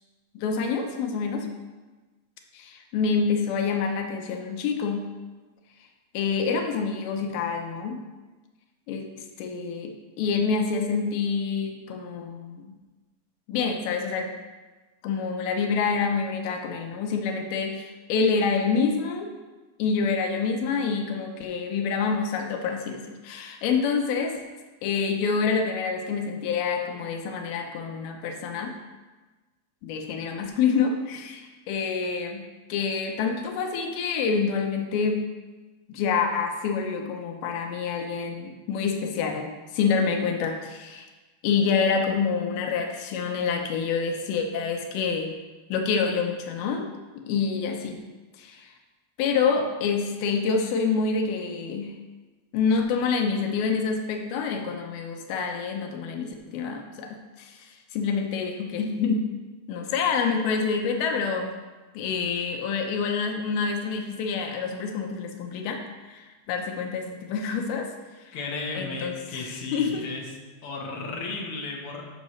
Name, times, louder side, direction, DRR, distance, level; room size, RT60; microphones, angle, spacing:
voice 1, 0.3-1.5 2.5-5.1 6.1-8.0 8.9-12.7 13.5-14.3 15.0-19.3 19.8-24.4 24.8-28.8 29.8-32.4 32.7-35.2 35.9-41.1 41.4-45.3 45.7-46.9 47.3-48.0 48.4-48.7 49.2-52.0 52.5-59.3 59.7-61.5 61.9-68.4 68.8-70.1, left 5 dB, 85° left, 3 dB, 2.7 m, -27 dB
voice 2, 68.3-70.3 70.6-72.0, left 3 dB, 65° left, -1 dB, 1.4 m, -34 dB
12.5 x 6.5 x 3.2 m, 1.2 s
omnidirectional pair, 4.2 m